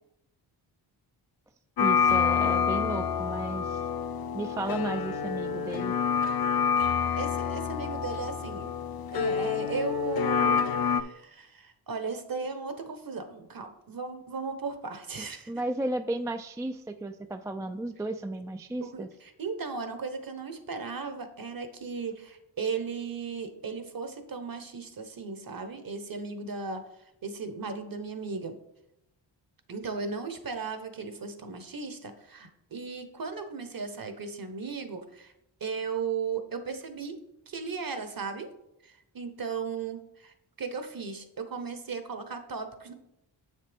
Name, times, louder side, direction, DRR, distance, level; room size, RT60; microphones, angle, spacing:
sound 1, 1.8-11.0, left 7 dB, 50° left, 0.5 m, -27 dB
voice 1, 1.8-3.8 4.3-5.9 15.2-19.1, right 2 dB, 10° right, 8 dB, 0.3 m, -34 dB
voice 2, 7.2-8.7 9.1-15.5 18.8-26.8 27.2-28.6 29.7-35.3 35.6-37.2 37.5-38.5 38.8-42.9, right 5 dB, 45° right, 8 dB, 1.1 m, -36 dB
7.3 x 6.5 x 3.5 m, 0.83 s
cardioid pair, 65°, 47 cm